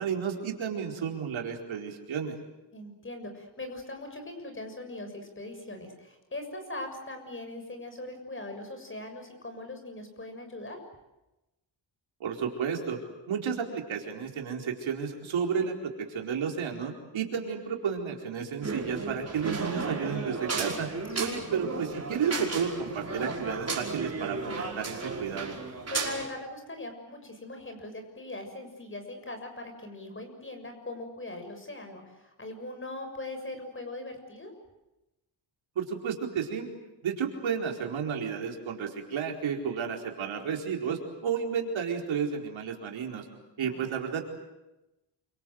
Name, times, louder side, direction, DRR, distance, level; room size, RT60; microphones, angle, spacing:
voice 1, 0.0-2.3 12.2-13.0 13.3-20.9 21.2-25.6 35.8-36.7 37.0-43.2 43.6-44.2, right 7 dB, 80° right, 2 dB, 4.6 m, -32 dB
voice 2, 2.7-10.8 17.5-17.6 25.9-34.5 43.6-43.9, left 2 dB, 25° left, 5 dB, 6.8 m, -40 dB
sound 1, 18.6-26.3, right 3 dB, 30° right, 5.5 m, -34 dB
28.5 x 25.5 x 7.9 m, 0.99 s
cardioid pair, 115°, 46 cm